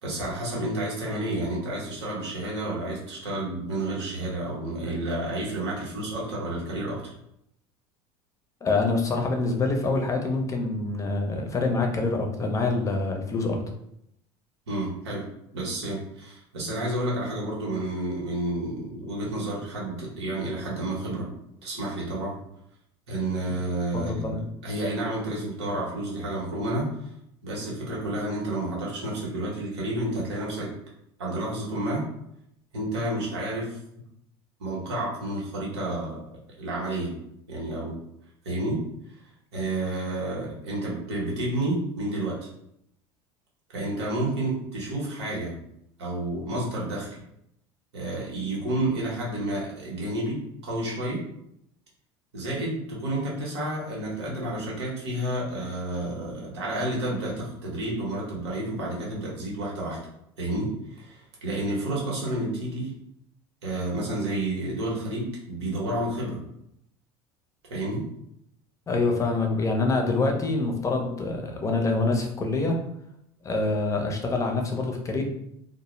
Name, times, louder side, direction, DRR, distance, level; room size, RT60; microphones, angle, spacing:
voice 1, 0.0-7.1 14.7-15.3 15.5-21.3 21.6-22.4 23.1-27.0 27.4-30.7 31.2-32.1 32.7-33.8 34.6-36.2 36.6-37.1 37.5-37.9 38.4-38.8 39.5-42.5 43.7-45.5 46.0-47.2 47.9-51.2 52.3-60.0 60.4-62.9 63.6-66.4 67.7-68.1, right 1 dB, 85° right, -3 dB, 0.9 m, -30 dB
voice 2, 8.6-13.6 23.9-24.4 68.9-72.8 73.4-75.2, left 3 dB, 25° left, 2 dB, 0.6 m, -26 dB
2.0 x 2.0 x 3.1 m, 0.77 s
hypercardioid pair, 85°, 14 cm